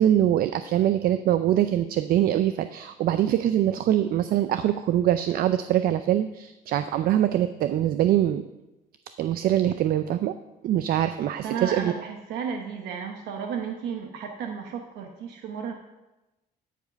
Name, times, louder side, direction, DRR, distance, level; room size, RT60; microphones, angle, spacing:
voice 1, 0.0-8.5 9.2-10.4 10.6-11.9, right 11 dB, 60° right, 11 dB, 0.5 m, -23 dB
voice 2, 11.4-15.7, right 6 dB, 85° right, 3 dB, 1.0 m, -33 dB
13.5 x 5.1 x 5.2 m, 1.0 s
cardioid pair, 110°, 17 cm